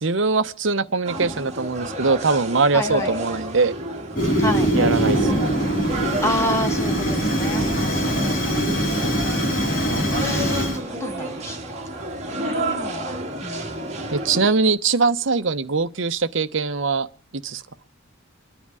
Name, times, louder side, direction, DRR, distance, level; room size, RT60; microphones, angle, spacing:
voice 1, 0.0-3.7 4.7-5.3 9.9-10.1 14.1-17.1 17.3-17.6, right 4 dB, 70° right, 0.9 m, -22 dB
sound 1, 1.0-14.5, right 1 dB, 35° right, 2.3 m, -31 dB
voice 2, 2.7-3.2 4.4-4.7 6.2-11.6 11.9-14.2, left 1 dB, 15° left, 1.8 m, -31 dB
Fire, 4.1-10.8, equal, 45° left, 5.2 m, -22 dB
28.0 x 10.0 x 4.8 m
head